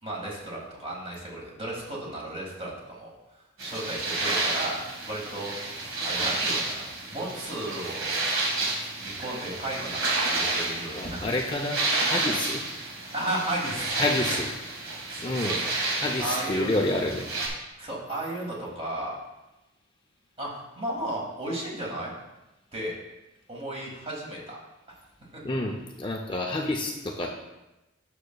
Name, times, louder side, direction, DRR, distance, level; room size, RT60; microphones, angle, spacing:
voice 1, 0.0-3.1 3.6-4.8 5.1-5.7 6.0-8.2 9.0-11.3 13.1-14.4 15.1-16.7 17.8-19.2 20.4-22.1 22.7-22.9 23.5-24.6 24.9-25.0 25.3-25.4, right 1 dB, 25° right, -3 dB, 1.9 m, -34 dB
sound 1, 3.6-17.5, right 2 dB, 70° right, 1.8 m, -30 dB
voice 2, 10.9-12.6 14.0-14.5 15.2-15.6 16.0-17.3 25.4-27.3, left 2 dB, 20° left, 0 dB, 0.5 m, -29 dB
11.5 x 6.5 x 2.3 m, 0.99 s
head